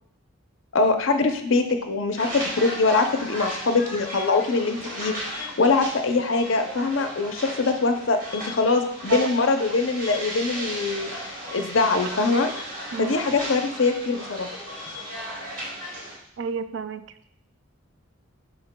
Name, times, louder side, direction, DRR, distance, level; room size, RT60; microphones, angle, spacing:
voice 1, 0.7-12.5 13.0-14.5, left 3 dB, 60° left, 6 dB, 0.6 m, -23 dB
sound 1, 2.2-16.1, equal, 40° right, 2.4 m, -35 dB
voice 2, 16.4-17.0, right 6 dB, 55° right, 11 dB, 0.4 m, -29 dB
8.0 x 5.6 x 2.2 m, 0.71 s
head